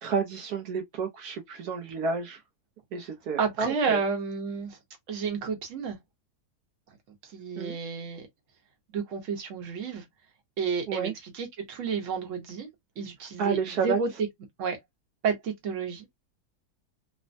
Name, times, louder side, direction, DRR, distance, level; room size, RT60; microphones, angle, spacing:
voice 1, 0.0-2.4 2.9-4.0 7.6-7.8 10.9-11.1 13.4-14.0, right 5 dB, 75° right, 1.1 m, -30 dB
voice 2, 3.4-4.8 5.1-6.0 7.2-8.3 8.9-10.0 10.6-12.7 13.0-14.1 14.6-14.8 15.2-16.1, right 5 dB, 55° right, 1.2 m, -31 dB
3.2 x 2.1 x 2.5 m
omnidirectional pair, 1.7 m